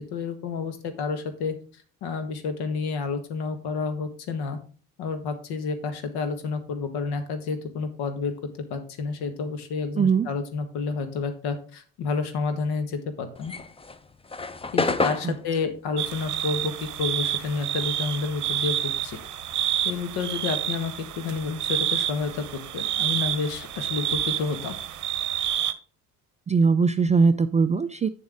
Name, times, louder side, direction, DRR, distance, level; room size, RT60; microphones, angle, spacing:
voice 1, 0.0-1.5 2.0-4.6 5.0-8.3 8.7-13.5 14.7-19.2 19.8-22.4 22.7-24.7, left 4 dB, 60° left, 9 dB, 1.5 m, -30 dB
voice 2, 10.0-10.3 15.2-15.3 26.5-28.1, right 5 dB, 15° right, 11 dB, 0.4 m, -20 dB
sound 1, 13.3-18.1 18.3-20.3, left 3 dB, 15° left, 0.7 m, -30 dB
sound 2, 16.0-25.7, right 11 dB, 45° right, 0.9 m, -29 dB
8.5 x 7.1 x 3.5 m, 0.40 s
hypercardioid pair, 55°, 43 cm